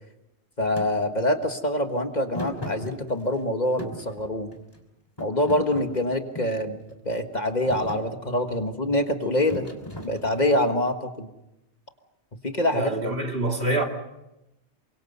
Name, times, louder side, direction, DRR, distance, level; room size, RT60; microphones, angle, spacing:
voice 1, 0.6-4.5 5.2-9.7 10.0-11.3 12.4-12.9 13.6-13.8, left 1 dB, 40° left, 1.6 m, -25 dB
Thump thud, 0.8-0.9 2.3-3.4 3.8-4.8 5.2-6.6 7.2-7.4 7.7-8.1 9.5-10.6, equal, 20° left, 3.2 m, -37 dB
voice 2, 12.7-13.8, right 2 dB, 55° right, 2.9 m, -26 dB
28.0 x 24.5 x 5.5 m
omnidirectional pair, 1.1 m